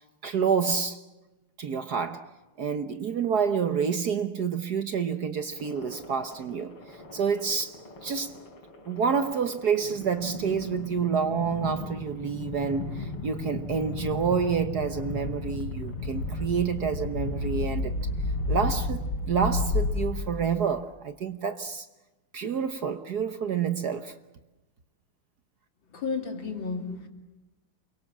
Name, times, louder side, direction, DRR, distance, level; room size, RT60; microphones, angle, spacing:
voice 1, 0.2-1.0 1.6-2.3 2.6-8.3 8.9-18.0 18.5-21.9 22.3-24.1, right 6 dB, 55° right, 1.4 m, -28 dB
sound 1, 5.6-20.7, left 3 dB, 80° left, 4.2 m, -33 dB
voice 2, 25.9-27.1, left 5 dB, 60° left, 3.4 m, -32 dB
28.5 x 23.5 x 7.4 m
omnidirectional pair, 2.4 m